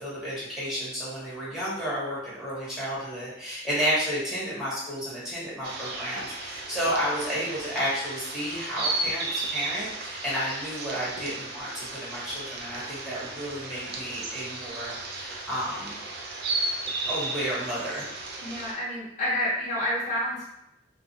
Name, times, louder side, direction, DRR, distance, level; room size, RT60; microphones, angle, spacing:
voice 1, 0.0-16.0 17.1-18.0, equal, ahead, -9 dB, 1.0 m, -31 dB
sound 1, 5.6-18.7, right 2 dB, 60° right, 0.4 m, -34 dB
voice 2, 18.4-20.4, left 1 dB, 40° left, -9 dB, 0.6 m, -29 dB
2.3 x 2.0 x 2.6 m, 0.80 s
head